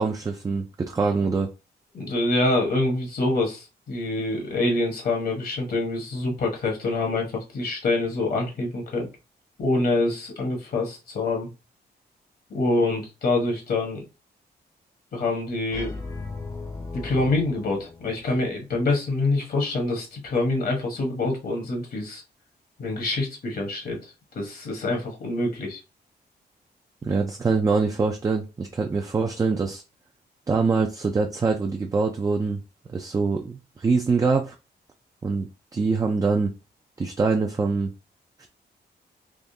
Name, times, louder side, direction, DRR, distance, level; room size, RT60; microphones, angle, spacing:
voice 1, 0.0-1.5 27.0-29.8 30.5-32.6 32.9-34.6 35.2-36.5 37.0-37.9, right 4 dB, 20° right, 3 dB, 0.3 m, -24 dB
voice 2, 1.9-9.1 9.6-11.5 12.5-14.0 15.1-15.9 16.9-22.2 22.8-25.8, left 2 dB, 60° left, 1 dB, 1.1 m, -26 dB
sound 1, 15.7-18.7, left 3 dB, 20° left, 0.6 m, -37 dB
3.5 x 3.0 x 2.7 m, 0.28 s
wide cardioid pair, 160°, 17 cm